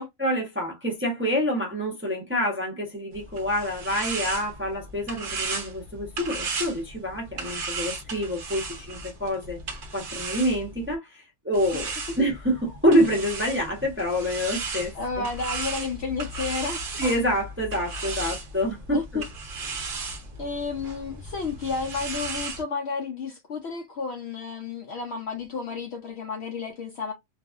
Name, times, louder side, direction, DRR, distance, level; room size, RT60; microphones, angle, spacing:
voice 1, 0.2-9.6 9.9-11.9 12.2-15.2 17.0-19.2, equal, 15° right, 0.5 m, -27 dB
sound 1, 3.1-11.0 11.5-22.6, right 3 dB, 50° right, 0.7 m, -35 dB
voice 2, 14.9-16.8 18.9-19.3 20.4-27.1, left 4 dB, 65° left, 0.7 m, -31 dB
2.5 x 2.3 x 2.4 m
omnidirectional pair, 1.5 m